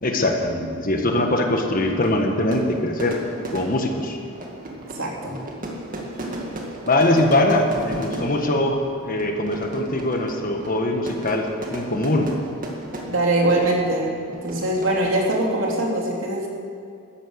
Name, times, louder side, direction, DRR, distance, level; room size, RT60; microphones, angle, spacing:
voice 1, 0.0-3.2 3.5-4.2 6.9-12.3, left 1 dB, 40° left, 3 dB, 1.5 m, -22 dB
Fire / Fireworks, 1.6-15.7, right 1 dB, 40° right, 2.1 m, -36 dB
voice 2, 4.9-5.4 13.1-14.1 14.4-16.5, right 1 dB, 65° right, -2 dB, 3.1 m, -22 dB
13.0 x 11.0 x 8.1 m, 2.4 s
head